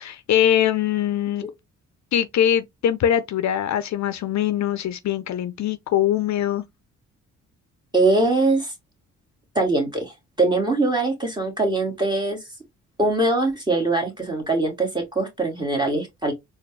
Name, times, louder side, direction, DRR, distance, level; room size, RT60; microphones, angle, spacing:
voice 1, 0.0-1.5 2.1-6.6, left 10 dB, 65° left, 0.5 m, -22 dB
voice 2, 7.9-8.7 9.6-12.4 13.0-16.3, right 2 dB, 15° right, 2.1 m, -22 dB
4.2 x 2.4 x 3.2 m
cardioid pair, 90°, 31 cm